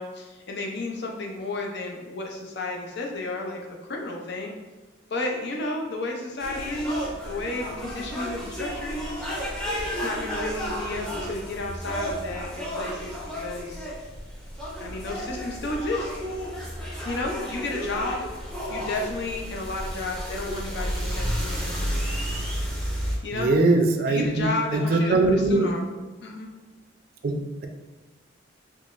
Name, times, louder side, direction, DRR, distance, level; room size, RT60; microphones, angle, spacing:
voice 1, 0.0-3.6 3.9-4.5 5.1-9.2 10.0-13.9 14.8-16.1 17.0-18.2 18.7-21.9 23.2-23.5 24.1-25.8 26.2-26.5, left 2 dB, 55° left, 0 dB, 0.6 m, -32 dB
sound 1, 6.4-23.2, equal, 5° left, 0.6 m, -32 dB
voice 2, 23.3-25.7 27.2-27.7, right 2 dB, 45° right, 4 dB, 0.4 m, -22 dB
3.8 x 3.1 x 2.5 m, 1.2 s
head